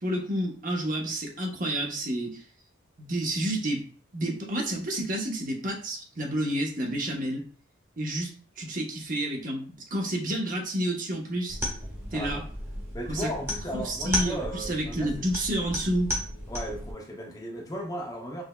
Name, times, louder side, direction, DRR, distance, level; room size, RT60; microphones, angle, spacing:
voice 1, 0.0-2.4 3.0-3.8 4.1-7.4 8.0-11.6 12.1-12.4 13.1-13.3 13.7-16.1, right 1 dB, 40° right, 0 dB, 1.0 m, -30 dB
sound 1, 11.5-16.9, equal, 10° right, 1.2 m, -34 dB
voice 2, 12.1-12.5 12.9-15.3 16.5-18.4, equal, 15° left, 0 dB, 0.6 m, -36 dB
6.2 x 3.3 x 2.2 m, 0.43 s
head